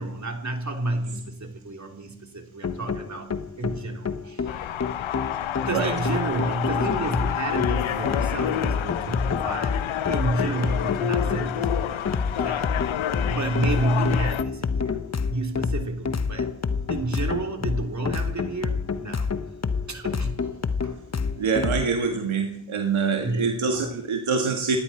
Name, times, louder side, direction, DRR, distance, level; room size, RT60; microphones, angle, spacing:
voice 1, 0.0-4.6 5.6-12.6 13.3-15.0 15.3-16.5 16.9-19.4 19.8-20.5 20.8-21.0 23.2-23.5 23.7-23.9, right 2 dB, 35° right, 3 dB, 3.4 m, -30 dB
sound 1, 2.6-21.9, left 5 dB, 30° left, 1.1 m, -28 dB
sound 2, 4.5-14.4, left 10 dB, 70° left, 0.9 m, -29 dB
voice 2, 21.4-24.8, right 5 dB, 70° right, 3 dB, 1.8 m, -25 dB
28.5 x 10.0 x 4.4 m, 0.74 s
supercardioid pair, 45°, 49 cm